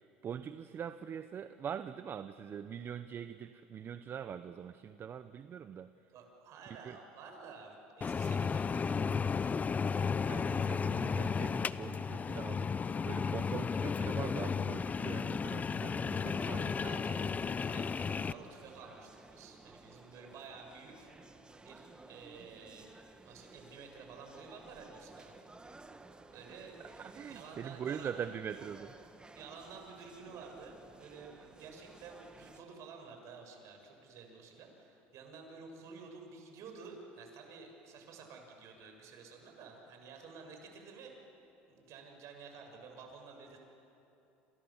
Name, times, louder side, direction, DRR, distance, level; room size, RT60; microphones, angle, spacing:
voice 1, 0.2-5.9 6.8-7.0 10.3-17.0 26.8-28.9, right 8 dB, 40° right, 12 dB, 0.9 m, -43 dB
voice 2, 6.1-9.6 16.1-17.3 17.6-21.1 21.6-22.9 23.3-25.3 26.3-26.8 27.0-28.2 29.3-41.2 41.7-43.6, right 5 dB, 55° right, 3 dB, 6.9 m, -51 dB
sound 1, 8.0-18.3, left 5 dB, 25° left, 0.8 m, -34 dB
sound 2, 16.1-32.6, right 2 dB, 15° right, 1.8 m, -56 dB
28.0 x 28.0 x 7.3 m, 2.9 s
hypercardioid pair, 85°, 6 cm